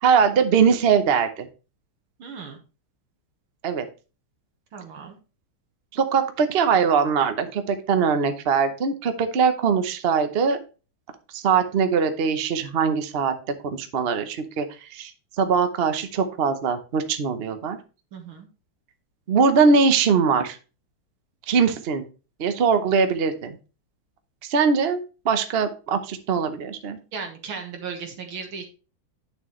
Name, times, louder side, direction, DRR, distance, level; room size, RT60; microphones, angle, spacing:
voice 1, 0.0-1.5 3.6-3.9 5.9-10.6 11.3-13.3 13.6-14.6 14.9-15.1 15.4-17.8 19.3-20.6 21.5-22.0 22.4-23.6 24.4-27.0, right 5 dB, 50° right, 8 dB, 0.7 m, -21 dB
voice 2, 2.2-2.6 4.7-5.2 18.1-18.5 27.1-28.6, right 5 dB, 75° right, 3 dB, 2.0 m, -36 dB
9.1 x 6.8 x 3.1 m, 0.33 s
omnidirectional pair, 2.3 m